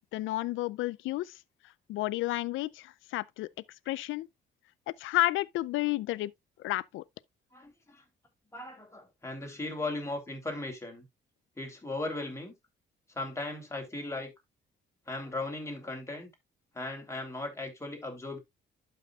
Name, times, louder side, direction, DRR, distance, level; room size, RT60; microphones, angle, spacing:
voice 1, 0.1-1.4 1.9-3.5 3.9-4.3 4.9-6.3 6.6-7.0, left 17 dB, 85° left, 0.5 m, -31 dB
voice 2, 7.5-8.0 8.5-11.0 11.6-12.5 13.1-14.3 15.1-16.3 16.7-18.4, left 2 dB, 15° left, 3.2 m, -37 dB
12.0 x 5.6 x 2.3 m
cardioid pair, 90°, 20 cm